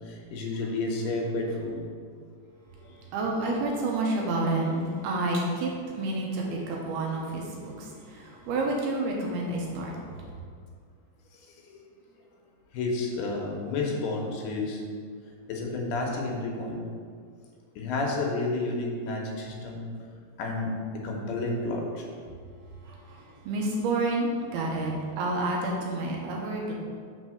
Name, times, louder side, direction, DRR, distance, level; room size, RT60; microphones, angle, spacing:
voice 1, 0.0-1.8 11.6-11.7 12.7-14.8 15.5-16.8 17.8-19.9 20.4-22.0, left 2 dB, 75° left, 0 dB, 2.7 m, -31 dB
voice 2, 3.1-10.3 22.8-26.7, right 2 dB, 75° right, -1 dB, 2.7 m, -29 dB
6.4 x 3.9 x 6.2 m, 2.1 s
omnidirectional pair, 4.8 m